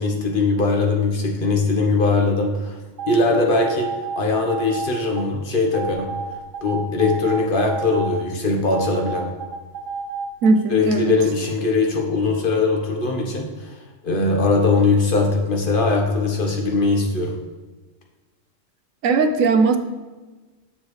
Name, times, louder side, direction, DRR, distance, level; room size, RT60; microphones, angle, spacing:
voice 1, 0.0-2.8 3.0-3.9 4.2-6.1 6.6-9.3 10.7-17.4, left 3 dB, 45° left, 1 dB, 1.2 m, -20 dB
sound 1, 3.0-5.2 5.7-8.2 8.7-10.5, right 5 dB, 60° right, 0.5 m, -30 dB
voice 2, 10.4-11.1 19.0-19.8, right 3 dB, 90° right, 8 dB, 1.1 m, -18 dB
7.0 x 6.8 x 3.2 m, 1.3 s
omnidirectional pair, 1.3 m